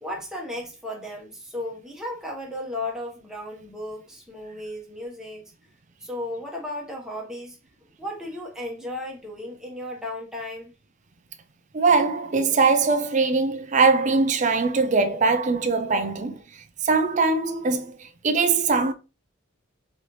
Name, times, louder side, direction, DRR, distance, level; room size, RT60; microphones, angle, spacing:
voice 1, 0.0-5.5 6.0-7.6 8.0-10.7, left 1 dB, 5° right, 1.0 m, -35 dB
voice 2, 11.7-18.9, right 4 dB, 35° right, 0.4 m, -22 dB
3.9 x 3.3 x 3.0 m
head